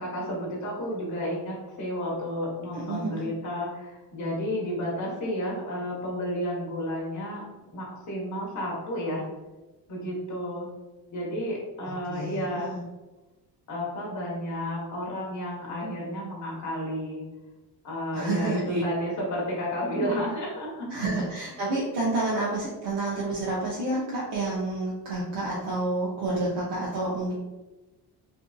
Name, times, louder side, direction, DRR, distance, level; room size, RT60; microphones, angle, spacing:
voice 1, 0.0-7.4 7.7-9.3 9.9-10.7 11.1-12.7 13.7-17.2 17.8-21.0, equal, 45° left, -3 dB, 0.9 m, -31 dB
voice 2, 2.7-3.3 11.8-12.8 18.1-18.8 20.9-27.3, right 2 dB, 75° right, -6 dB, 0.7 m, -29 dB
2.7 x 2.5 x 2.2 m, 1.1 s
cardioid pair, 120°, 42 cm